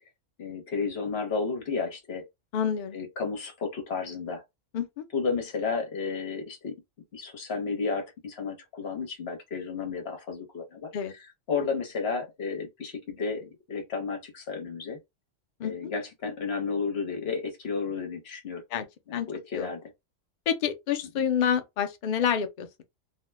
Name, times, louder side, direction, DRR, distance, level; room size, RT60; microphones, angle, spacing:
voice 1, 0.4-2.2 2.9-4.4 5.1-6.7 7.1-10.9 11.5-15.0 15.6-18.6 19.1-19.9 21.1-21.3, left 4 dB, 55° left, 1.1 m, -32 dB
voice 2, 2.5-3.0 4.7-5.0 10.9-11.1 15.6-15.9 18.7-18.9 19.1-19.3 19.5-19.7 20.5-22.8, left 8 dB, 85° left, 0.4 m, -28 dB
2.7 x 2.1 x 3.3 m
omnidirectional pair, 1.4 m